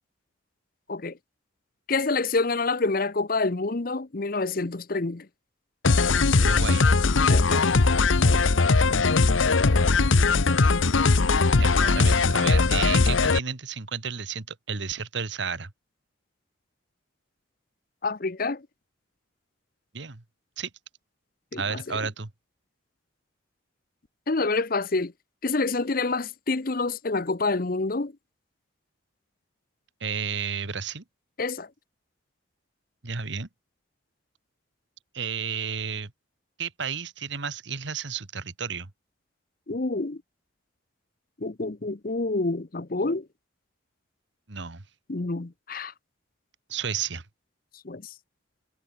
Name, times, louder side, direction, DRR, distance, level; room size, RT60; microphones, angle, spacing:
voice 1, 1.9-5.3 7.3-7.6 18.0-18.7 21.5-22.0 24.3-25.1 25.4-28.1 31.4-31.7 39.7-40.2 41.4-43.3 45.1-45.9 47.8-48.1, left 3 dB, 45° left, 0.8 m, -27 dB
sound 1, 5.8-13.4, left 3 dB, 75° left, 0.9 m, -20 dB
voice 2, 6.4-6.9 11.6-15.7 19.9-20.2 20.6-20.7 21.6-22.3 30.0-31.0 33.0-33.5 35.1-36.1 36.6-38.9 44.5-44.8 46.7-47.2, right 6 dB, 65° right, 1.5 m, -32 dB
head